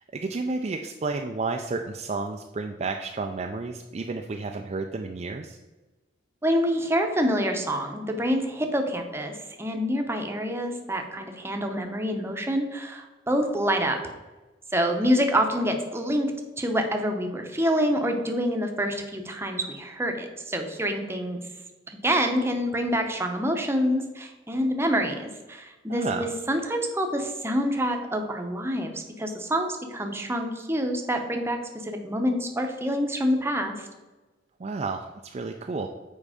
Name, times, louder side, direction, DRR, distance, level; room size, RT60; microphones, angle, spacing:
voice 1, 0.0-5.6 25.9-26.3 34.6-35.9, right 3 dB, 35° right, 3 dB, 0.4 m, -31 dB
voice 2, 6.4-9.3 9.6-14.0 14.7-16.3 16.6-21.4 22.0-31.6 31.8-33.9, equal, 15° right, 4 dB, 0.8 m, -26 dB
7.4 x 4.7 x 4.9 m, 1.2 s
head